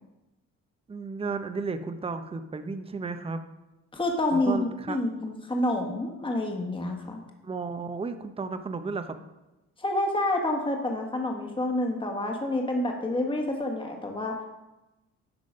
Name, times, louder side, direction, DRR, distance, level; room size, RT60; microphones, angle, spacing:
voice 1, 0.9-3.4 4.3-5.0 7.4-9.2, right 4 dB, 20° right, 9 dB, 0.6 m, -33 dB
voice 2, 3.9-7.2 9.8-14.3, left 1 dB, 15° left, 2 dB, 1.3 m, -28 dB
10.5 x 3.8 x 5.2 m, 1.0 s
cardioid pair, 90°, 30 cm